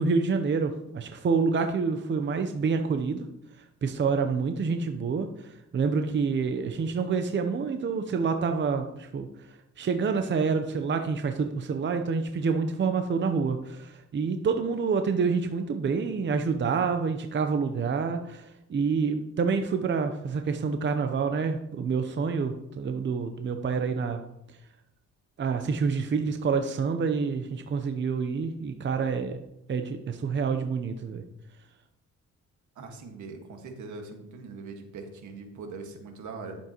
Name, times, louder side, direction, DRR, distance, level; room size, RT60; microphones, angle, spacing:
voice 1, 0.0-3.3 3.8-9.3 9.8-24.2 25.4-29.4 29.7-31.2, right 5 dB, 40° right, 6 dB, 0.7 m, -27 dB
voice 2, 32.8-36.6, right 4 dB, 75° right, 4 dB, 1.7 m, -41 dB
11.0 x 7.3 x 3.0 m, 0.84 s
cardioid pair, 90°, 30 cm